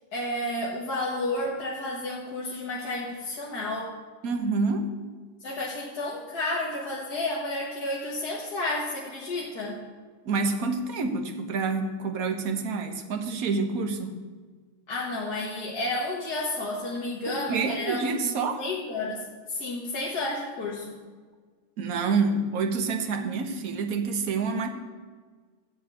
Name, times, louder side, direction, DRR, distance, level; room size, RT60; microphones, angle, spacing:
voice 1, 0.1-3.9 5.4-9.8 14.9-21.0, left 2 dB, 50° left, -4 dB, 1.7 m, -31 dB
voice 2, 4.2-4.9 10.3-14.1 17.3-18.6 21.8-24.7, right 4 dB, 55° right, 6 dB, 1.0 m, -27 dB
12.5 x 4.3 x 8.3 m, 1.5 s
omnidirectional pair, 2.4 m